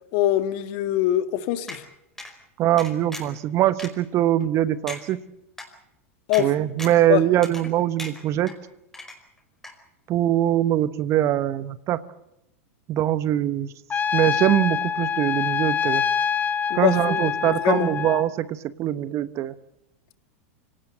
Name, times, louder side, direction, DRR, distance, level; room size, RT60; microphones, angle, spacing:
voice 1, 0.1-1.8 6.3-6.5 7.1-7.2 16.7-17.9, left 13 dB, 55° left, 11 dB, 1.8 m, -23 dB
sound 1, 1.7-1.8 2.2-2.3 2.8-3.4 3.8-3.9 4.4-4.5 4.9-5.0 5.6-5.7 6.3-6.5 6.8-7.1 7.4-7.7 8.0-8.6 8.9-9.4 9.6-9.7, left 2 dB, 5° left, 5.0 m, -37 dB
voice 2, 2.6-5.2 6.4-8.5 10.1-12.0 12.9-13.7 14.1-16.0 16.7-19.5, right 12 dB, 40° right, 16 dB, 1.1 m, -22 dB
Trumpet, 13.9-18.3, left 7 dB, 20° left, 1.1 m, -25 dB
25.0 x 18.0 x 7.9 m, 0.85 s
hypercardioid pair, 100°, 7 cm